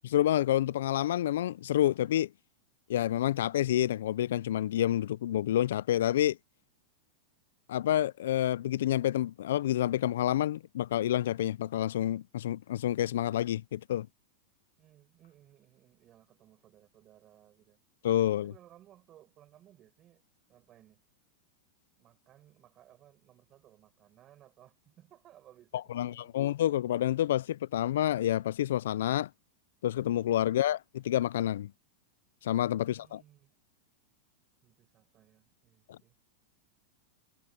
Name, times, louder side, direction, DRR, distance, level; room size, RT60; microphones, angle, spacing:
voice 1, 0.1-2.3 2.9-6.4 7.7-14.1 18.0-18.5 25.9-29.3 29.8-31.7 32.4-33.2 35.9-36.0, left 12 dB, 80° left, 0.3 m, -28 dB
voice 2, 14.8-17.8 18.4-20.2 20.5-21.0 22.0-26.4 32.8-33.5 34.6-36.2, right 12 dB, 30° right, 6.6 m, -60 dB
supercardioid pair, 150°, 0 cm